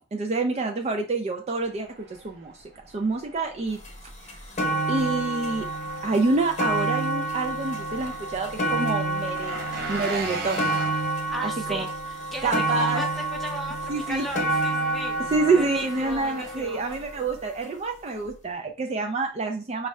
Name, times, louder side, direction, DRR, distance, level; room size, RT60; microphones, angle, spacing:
voice 1, 0.1-2.5 2.9-3.8 4.2-4.5 4.9-5.7 6.0-10.7 11.4-11.8 12.4-13.0 13.9-14.3 15.3-19.9, right 3 dB, 35° right, 3 dB, 0.3 m, -27 dB
Engine, 1.6-17.4, right 3 dB, 50° right, 0.8 m, -40 dB
sound 1, 3.8-3.9 4.3-17.5 18.2-18.3, right 2 dB, 35° left, 0.8 m, -29 dB
voice 2, 11.3-15.2 15.5-16.8, equal, ahead, 1 dB, 0.8 m, -36 dB
5.2 x 2.3 x 3.1 m, 0.37 s
head